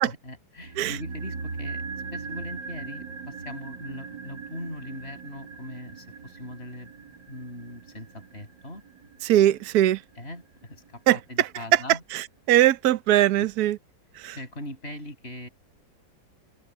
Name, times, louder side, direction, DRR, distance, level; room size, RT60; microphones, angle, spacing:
voice 1, 0.0-1.8 2.1-6.9 7.3-8.8 10.2-12.0 13.4-13.5 14.3-15.5, left 1 dB, 35° left, 7.0 m, -40 dB
sound 1, 0.6-10.9 11.1-11.2, right 4 dB, 85° right, 2.6 m, -40 dB
voice 2, 9.2-10.0 11.1-11.8 12.1-13.8 14.2-14.4, right 13 dB, 65° right, 1.3 m, -21 dB
omnidirectional pair, 1.9 m